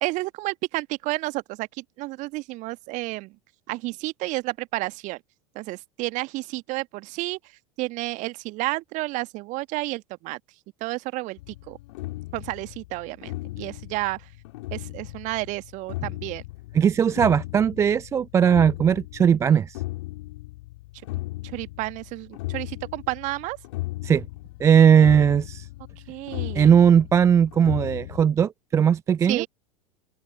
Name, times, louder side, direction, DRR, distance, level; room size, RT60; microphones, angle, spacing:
voice 1, 0.0-3.3 3.7-5.2 5.5-7.4 7.8-10.4 10.8-11.8 12.3-14.2 14.7-16.4 21.5-23.6 26.1-26.7 29.3-29.5, right 21 dB, 40° right, 1.6 m, -31 dB
sound 1, 11.4-28.2, left 19 dB, 55° left, 3.6 m, -36 dB
voice 2, 16.7-19.8 24.0-24.2 24.6-25.7 26.5-29.5, right 8 dB, 15° right, 0.3 m, -18 dB
open air
figure-of-eight pair, 85°, 19 cm